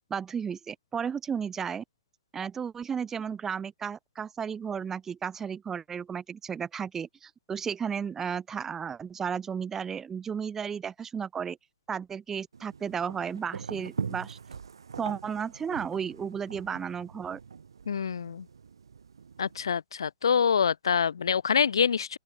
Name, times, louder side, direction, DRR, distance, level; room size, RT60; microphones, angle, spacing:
voice 1, 0.1-1.8 2.3-11.6 11.9-14.4 15.0-17.4, right 7 dB, 15° right, 2.3 m, -34 dB
sound 1, 12.5-19.7, right 6 dB, 75° right, 6.2 m, -42 dB
voice 2, 17.9-18.5 19.4-22.2, left 7 dB, 70° left, 1.8 m, -26 dB
open air
figure-of-eight pair, 120°, 2 cm